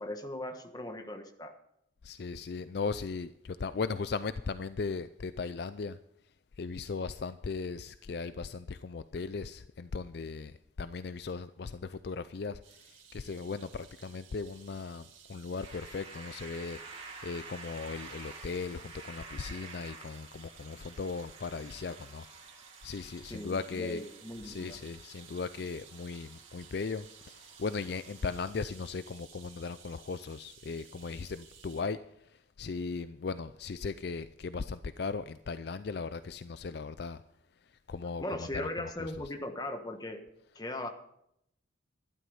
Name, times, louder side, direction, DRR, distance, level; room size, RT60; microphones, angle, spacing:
voice 1, 0.0-1.5 23.2-24.8 38.2-40.2 40.5-40.9, left 1 dB, 20° left, 1.3 m, -39 dB
voice 2, 2.0-6.0 6.6-22.5 22.8-24.1 24.4-32.0 32.2-37.2 37.9-39.3, left 4 dB, 55° left, 0.4 m, -38 dB
sound 1, 12.6-31.8, right 7 dB, 85° right, 2.4 m, -56 dB
sound 2, 15.6-28.4, right 4 dB, 30° right, 2.1 m, -51 dB
12.5 x 11.5 x 5.5 m
head